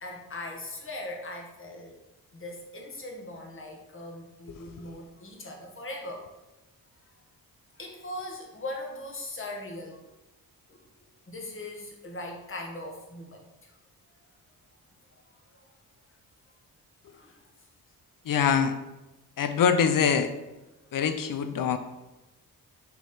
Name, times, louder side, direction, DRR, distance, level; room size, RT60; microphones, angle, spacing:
voice 1, 0.0-2.0 2.3-6.3 7.8-10.0 10.7-10.8 11.3-13.7 17.1-17.4 20.9-21.1, left 1 dB, 35° left, 1 dB, 1.5 m, -40 dB
voice 2, 18.3-18.7 19.4-20.3 20.9-21.8, left 7 dB, 60° left, 9 dB, 0.7 m, -24 dB
6.0 x 3.6 x 4.3 m, 1.0 s
cardioid pair, 80°, 37 cm